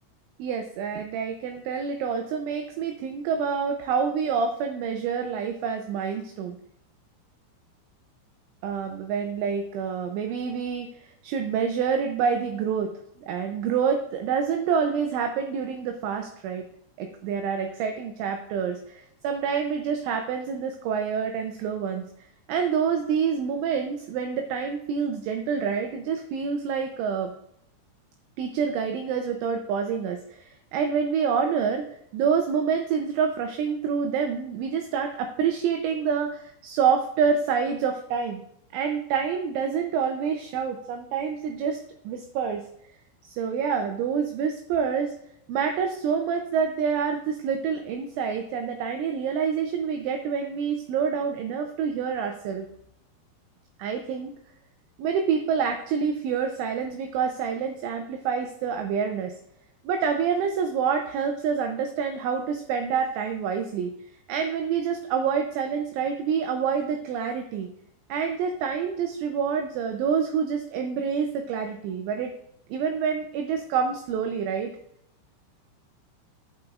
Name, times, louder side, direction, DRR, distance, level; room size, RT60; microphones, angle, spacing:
voice 1, 0.4-6.6 8.6-12.9 13.2-16.6 17.0-27.3 28.4-31.9 32.1-38.4 38.7-41.8 42.1-42.6 43.2-45.1 45.5-52.7 53.8-54.3 55.0-59.3 59.9-64.0 64.3-67.7 68.1-72.3 72.7-74.7, right 6 dB, 80° right, 5 dB, 2.8 m, -27 dB
14.5 x 6.3 x 2.4 m, 0.74 s
omnidirectional pair, 5.9 m